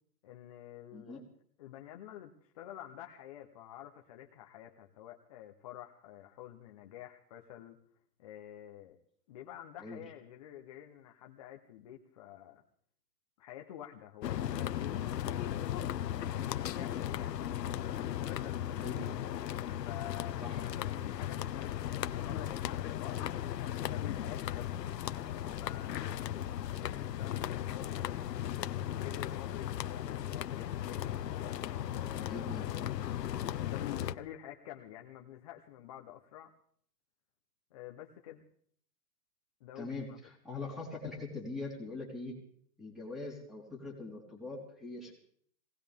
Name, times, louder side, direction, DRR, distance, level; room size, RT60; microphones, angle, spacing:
voice 1, 0.2-1.2 1.6-7.8 8.2-9.0 9.3-12.6 13.4-15.6 16.2-17.6 18.3-19.2 19.8-20.5 20.8-24.9 25.6-26.3 26.8-31.1 31.7-32.5 33.5-36.5 37.7-38.4 39.6-40.2, left 12 dB, 25° left, 2 dB, 0.7 m, -49 dB
voice 2, 0.9-1.2 9.8-10.0 18.7-19.2 20.4-20.6 32.2-32.7 39.8-42.4 42.8-45.1, left 3 dB, ahead, -2 dB, 3.8 m, -42 dB
sound 1, 14.2-34.1, left 11 dB, 75° left, 0.9 m, -36 dB
22.5 x 18.5 x 3.5 m, 0.62 s
hypercardioid pair, 155°, 50 cm